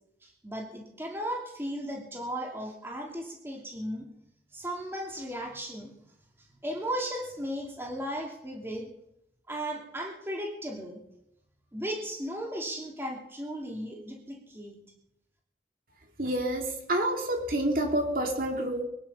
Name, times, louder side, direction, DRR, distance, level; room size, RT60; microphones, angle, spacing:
voice 1, 0.2-4.1 4.5-5.9 6.5-8.9 9.5-11.0 11.7-14.8, equal, 15° right, 0 dB, 2.9 m, -36 dB
voice 2, 16.2-18.8, right 1 dB, 50° right, 2 dB, 2.7 m, -28 dB
24.0 x 9.8 x 5.6 m, 0.79 s
head